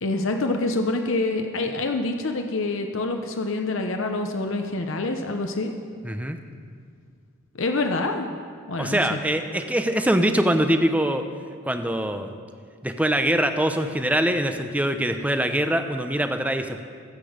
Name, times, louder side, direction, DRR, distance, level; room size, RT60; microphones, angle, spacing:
voice 1, 0.0-5.7 7.5-8.3 8.7-9.2, left 2 dB, 60° left, 4 dB, 0.9 m, -26 dB
voice 2, 6.0-6.4 8.8-11.2 11.6-12.3 12.8-16.8, right 1 dB, 5° right, 7 dB, 0.7 m, -23 dB
22.0 x 8.4 x 5.1 m, 2.1 s
head